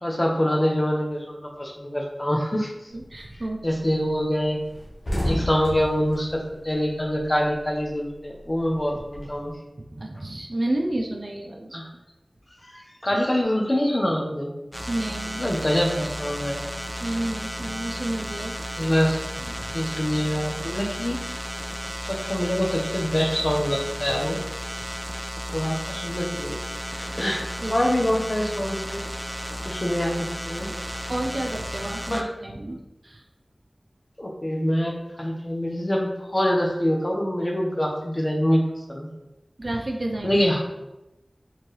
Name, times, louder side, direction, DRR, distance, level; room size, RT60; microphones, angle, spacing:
voice 1, 0.0-2.7 3.6-4.6 5.2-9.5 11.7-11.9 12.6-14.5 15.4-16.6 18.7-19.2 19.7-21.2 22.0-24.4 25.5-26.6 26.9-29.0 29.6-30.2 30.5-30.7 32.1-32.3 32.7-32.8 34.2-38.6 38.9-39.1 40.2-40.6, equal, 40° left, 0 dB, 0.9 m, -25 dB
sound 1, 2.9-3.3 3.7-3.8 4.1-4.2 4.5-7.5 7.8-9.5, equal, 75° left, 1.3 m, -31 dB
voice 2, 2.9-3.6 9.8-11.8 14.9-15.4 17.0-18.5 19.4-19.6 27.6-27.7 31.1-32.8 33.0-33.2 39.6-40.4, right 1 dB, 65° right, 2 dB, 0.6 m, -30 dB
sound 2, 14.7-32.2, equal, 5° right, 0.4 m, -33 dB
4.5 x 3.5 x 3.2 m, 0.95 s
wide cardioid pair, 45°, 0 cm